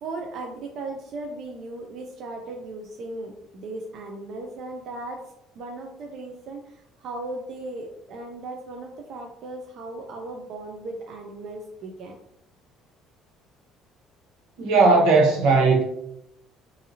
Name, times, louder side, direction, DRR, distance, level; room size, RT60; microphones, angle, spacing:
voice 1, 0.0-5.2 5.6-12.2, right 2 dB, 50° right, 0.3 m, -37 dB
voice 2, 14.6-15.8, right 3 dB, 85° right, 0.8 m, -17 dB
2.7 x 2.5 x 2.7 m
cardioid pair, 180°, 0 cm